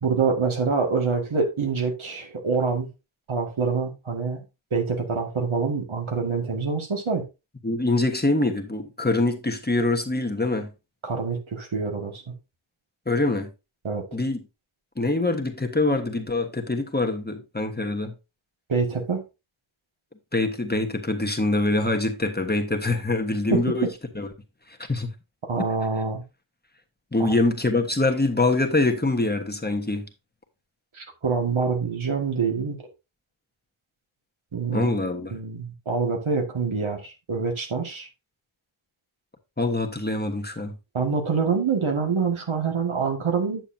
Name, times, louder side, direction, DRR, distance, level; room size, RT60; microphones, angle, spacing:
voice 1, 0.0-2.9 3.3-4.4 4.7-7.2 11.0-12.2 13.8-14.0 18.7-19.2 25.5-26.2 27.2-27.4 30.9-32.8 34.5-34.9 35.3-38.1 40.9-43.6, right 5 dB, 75° right, 1.9 m, -26 dB
voice 2, 7.6-10.7 13.1-13.5 14.1-14.4 15.0-18.1 20.3-23.9 24.2-24.3 24.9-25.1 27.1-30.1 34.7-35.3 39.6-40.7, left 2 dB, 20° left, 1.3 m, -24 dB
8.9 x 6.8 x 2.7 m
wide cardioid pair, 60°, 48 cm